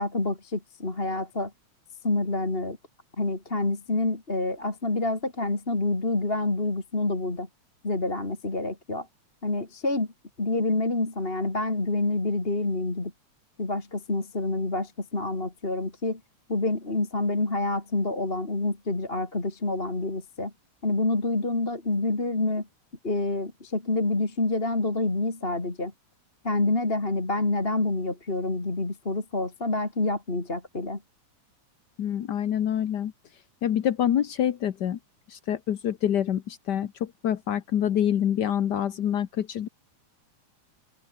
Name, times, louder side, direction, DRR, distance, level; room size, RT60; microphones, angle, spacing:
voice 1, 0.0-1.5 2.0-2.8 3.2-7.5 7.8-9.1 9.4-10.1 10.4-13.1 13.6-16.2 16.5-20.5 20.8-22.7 23.0-25.9 26.4-31.0, left 2 dB, 20° left, 3.0 m, -27 dB
voice 2, 32.0-33.1 33.6-35.0 35.3-39.7, left 10 dB, 75° left, 0.9 m, -26 dB
omnidirectional pair, 3.3 m